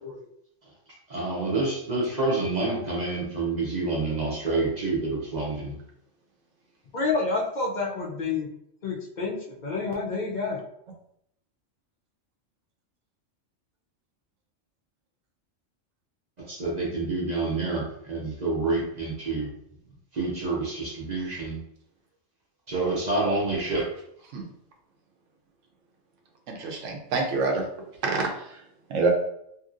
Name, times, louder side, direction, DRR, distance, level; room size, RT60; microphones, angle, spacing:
voice 1, 1.1-5.8 16.4-19.5 20.1-21.6 22.7-23.9, right 3 dB, 45° right, -4 dB, 0.6 m, -28 dB
voice 2, 6.9-8.5 8.8-10.6, left 4 dB, 60° left, -3 dB, 0.5 m, -29 dB
voice 3, 26.5-27.6 28.0-28.3 28.9-29.1, right 3 dB, 75° right, 1 dB, 1.0 m, -26 dB
2.8 x 2.7 x 2.4 m, 0.74 s
omnidirectional pair, 1.3 m